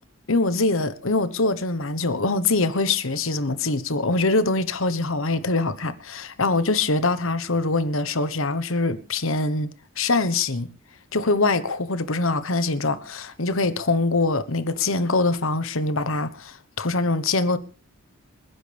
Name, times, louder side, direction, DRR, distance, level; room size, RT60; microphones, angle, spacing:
voice 1, 0.3-10.7 11.1-17.6, left 3 dB, 65° left, 1.2 m, -23 dB
27.5 x 10.0 x 3.5 m
head